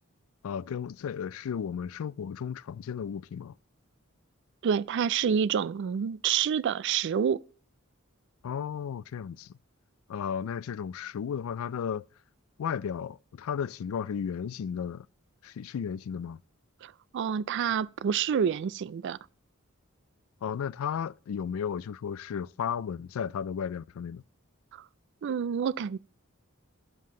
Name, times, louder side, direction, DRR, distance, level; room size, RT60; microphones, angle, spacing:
voice 1, 0.4-3.5 8.4-9.5 10.1-12.1 12.6-15.1 15.4-16.4 20.4-24.2, left 7 dB, 75° left, 0.3 m, -34 dB
voice 2, 4.6-7.4 16.8-19.2 24.7-24.8 25.2-26.0, right 7 dB, 55° right, 0.3 m, -28 dB
9.2 x 7.6 x 3.7 m
head